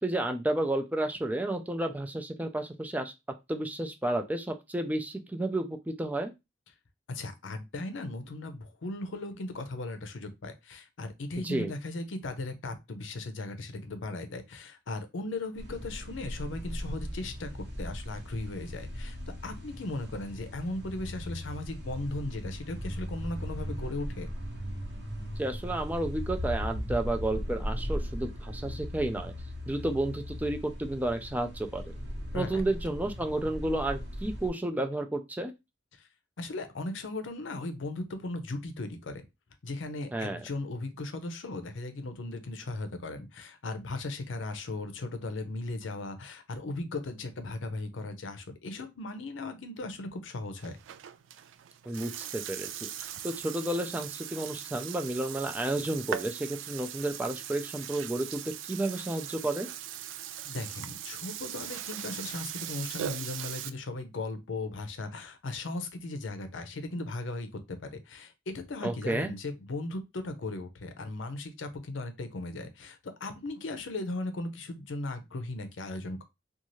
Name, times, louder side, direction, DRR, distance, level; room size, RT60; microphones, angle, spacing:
voice 1, 0.0-3.1 3.5-6.3 11.4-11.7 25.4-29.3 29.7-31.8 32.3-35.5 40.1-40.4 51.9-58.4 58.7-59.7 68.8-69.3, right 1 dB, 10° right, 0.4 m, -31 dB
voice 2, 7.1-19.2 19.4-24.3 32.3-32.6 35.9-36.1 36.4-39.2 39.6-50.8 60.4-76.2, left 2 dB, 90° left, 0.6 m, -37 dB
sound 1, 15.6-34.5, equal, 65° right, 1.0 m, -38 dB
Burping eructation, 50.6-63.7, right 10 dB, 85° right, 0.3 m, -40 dB
2.5 x 2.4 x 3.0 m
head